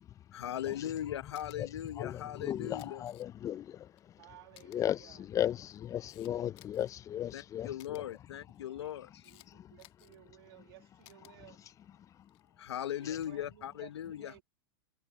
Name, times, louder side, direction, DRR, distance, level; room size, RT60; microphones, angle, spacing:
voice 1, 0.3-3.0 7.3-9.2 12.6-14.4, left 11 dB, 85° left, 1.1 m, -39 dB
Camera, 1.3-1.6 2.6-3.5 4.0-4.1 4.5-4.8 5.5-6.9 7.8-8.0 8.8-9.5 9.8-10.2 11.0-11.3 12.2-12.5, left 18 dB, 40° left, 1.4 m, -59 dB
voice 2, 2.0-4.1 4.7-8.0 9.5-9.8, left 11 dB, 25° left, 0.5 m, -36 dB
voice 3, 4.2-5.3 8.7-8.9 9.2-11.6 12.8-14.4, right 17 dB, 65° right, 2.6 m, -57 dB
hypercardioid pair, 125°, 14 cm